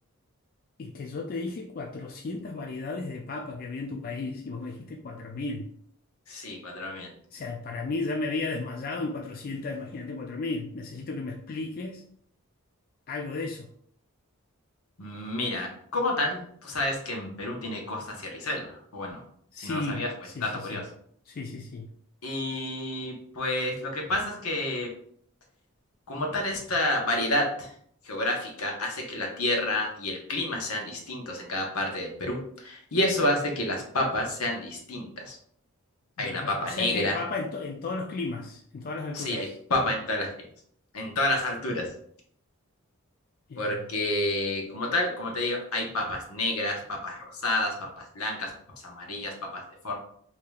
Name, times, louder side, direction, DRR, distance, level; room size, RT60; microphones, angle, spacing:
voice 1, 0.8-5.7 7.3-12.0 13.1-13.7 19.5-20.8 21.3-21.9 36.2-39.6 43.5-43.9, left 3 dB, 40° left, 1 dB, 0.3 m, -34 dB
voice 2, 6.3-7.1 15.0-19.2 19.6-20.1 20.4-20.8 22.2-24.9 26.1-27.7 28.1-35.4 36.2-37.2 39.1-40.3 40.9-41.9 43.6-48.5 48.8-50.0, left 1 dB, 80° left, 1 dB, 1.0 m, -29 dB
4.9 x 2.8 x 2.3 m, 0.63 s
head